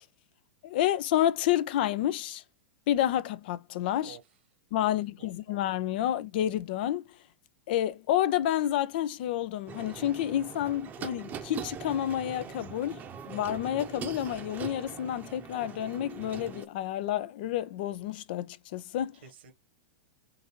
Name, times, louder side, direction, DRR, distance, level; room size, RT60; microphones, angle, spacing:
voice 1, 0.6-2.4 2.9-4.2 4.7-7.0 7.7-13.0 13.3-19.2, left 12 dB, 55° left, 0.5 m, -29 dB
voice 2, 4.8-5.6 19.2-19.5, right 8 dB, 70° right, 1.4 m, -51 dB
sound 1, 9.7-16.7, right 7 dB, 30° right, 0.8 m, -42 dB
3.8 x 2.7 x 4.4 m
hypercardioid pair, 105°, 6 cm